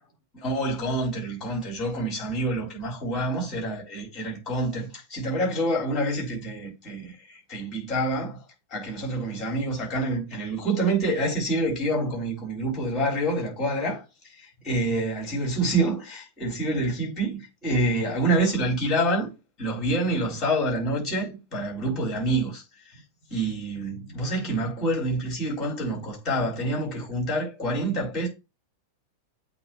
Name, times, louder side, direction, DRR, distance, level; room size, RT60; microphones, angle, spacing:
voice 1, 0.3-8.4 8.7-19.3 19.6-23.0 23.3-28.3, right 1 dB, 25° left, 4.0 m, -27 dB
8.3 x 2.9 x 4.5 m
figure-of-eight pair, 90°, 0 cm